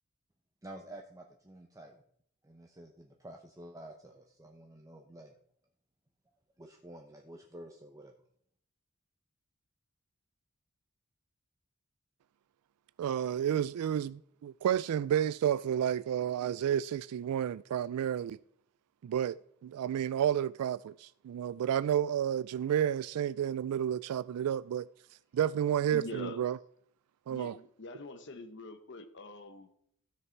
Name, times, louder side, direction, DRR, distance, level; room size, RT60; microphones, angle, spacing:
voice 1, 0.6-2.0 2.4-5.3 6.6-8.1, right 1 dB, 15° right, 0.8 m, -50 dB
voice 2, 13.0-18.4 19.0-19.4 19.6-24.9 25.3-26.6 27.3-27.5, right 9 dB, 85° right, 0.3 m, -31 dB
voice 3, 25.9-26.4 27.3-29.7, left 2 dB, 55° left, 0.9 m, -44 dB
14.5 x 6.6 x 4.5 m
head